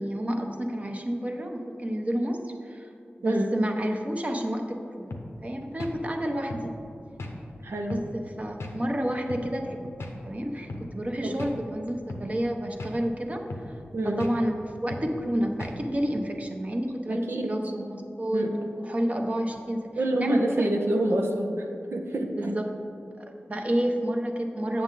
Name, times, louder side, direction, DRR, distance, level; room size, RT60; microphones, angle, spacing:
voice 1, 0.0-2.9 3.2-6.8 7.9-9.8 10.2-13.5 14.0-19.9 20.2-20.7 21.1-21.2 22.4-22.7 23.2-24.8, equal, 35° right, 3 dB, 0.9 m, -30 dB
voice 2, 3.2-3.5 7.6-8.0 11.2-11.4 13.9-14.2 17.1-17.5 18.3-18.5 20.0-22.5, right 1 dB, 70° right, 2 dB, 0.7 m, -27 dB
sound 1, 5.1-5.3 5.8-6.0 6.5-6.7 7.2-7.4 7.9-8.1 8.6-8.8 9.3-9.5 10.0-10.2 10.7-10.9 11.4-11.6 12.1-12.3 12.8-13.0 13.5-13.7 14.2-14.4 14.9-15.1 15.6-15.8, left 2 dB, 85° left, 0.8 m, -36 dB
7.8 x 6.6 x 3.9 m, 2.6 s
cardioid pair, 40°, 4 cm